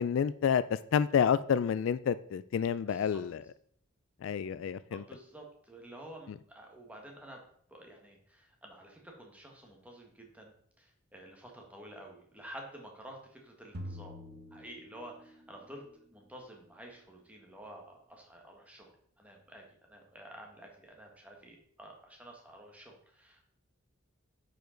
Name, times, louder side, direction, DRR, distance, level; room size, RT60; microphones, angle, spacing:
voice 1, 0.0-3.4 4.2-5.0 6.3-6.4, left 7 dB, 70° left, 15 dB, 0.3 m, -29 dB
voice 2, 2.9-3.2 4.9-7.4 7.7-14.2 14.5-15.8 16.1-18.9 19.2-23.4, right 1 dB, 5° right, 0 dB, 1.4 m, -50 dB
sound 1, 13.7-15.5, equal, 50° right, 0.9 m, -45 dB
9.3 x 5.1 x 3.9 m, 0.62 s
head